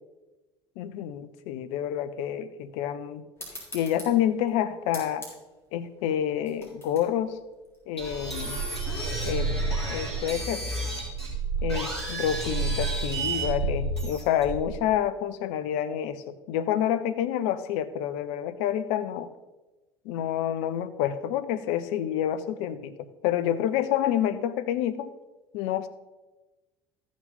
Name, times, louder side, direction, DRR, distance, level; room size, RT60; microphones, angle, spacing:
voice 1, 0.8-3.3 3.7-5.2 5.7-7.4 7.9-8.6 9.3-9.6 9.9-10.6 11.6-19.3 20.0-25.1 25.5-25.9, left 10 dB, 55° left, 12 dB, 0.6 m, -28 dB
sound 1, 3.4-8.4, left 1 dB, 20° left, 3.7 m, -46 dB
sound 2, 8.0-14.8, right 3 dB, 85° left, 2.1 m, -30 dB
13.5 x 6.3 x 4.1 m, 1.1 s
figure-of-eight pair, 60°, 13 cm